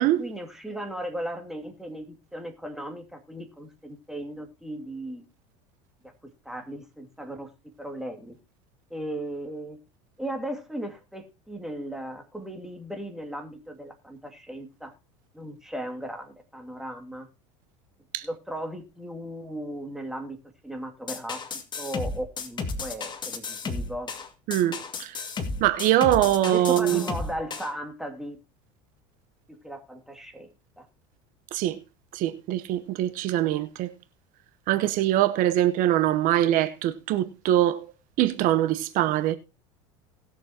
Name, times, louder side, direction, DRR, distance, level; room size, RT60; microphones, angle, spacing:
voice 1, 0.0-5.2 6.4-8.4 8.9-9.8 10.2-14.9 15.3-17.3 18.2-20.4 20.6-21.4 21.8-24.1 26.4-28.4 29.5-30.9, right 1 dB, 5° right, 2.3 m, -36 dB
sound 1, 21.1-27.7, left 4 dB, 30° left, 2.1 m, -33 dB
voice 2, 24.5-25.2 25.6-27.0 31.5-31.8 32.1-33.9 34.7-37.9 38.2-39.4, right 13 dB, 60° right, 0.9 m, -23 dB
19.5 x 7.0 x 2.8 m
supercardioid pair, 110°, 16 cm